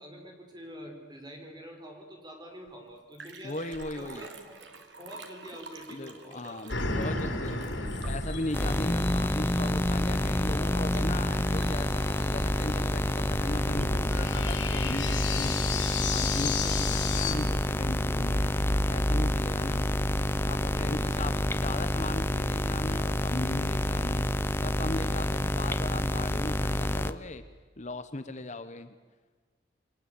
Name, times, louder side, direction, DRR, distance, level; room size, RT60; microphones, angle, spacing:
voice 1, 0.0-3.6 4.0-4.7 5.0-7.8 20.6-21.4, equal, 25° right, 3 dB, 5.7 m, -46 dB
Liquid, 2.7-2.8 3.0-14.9 15.3-15.4, right 3 dB, 75° right, 3.0 m, -50 dB
voice 2, 3.4-4.3 5.9-7.6 8.0-18.6 18.9-19.9 20.4-24.3 24.6-27.4 27.8-28.9, left 2 dB, 40° left, 10 dB, 1.2 m, -38 dB
sound 1, 6.7-17.3, left 4 dB, 85° left, 5.4 m, -35 dB
sound 2, 8.5-27.1, left 1 dB, 15° left, 0.8 m, -28 dB
29.0 x 23.5 x 8.6 m, 1.4 s
head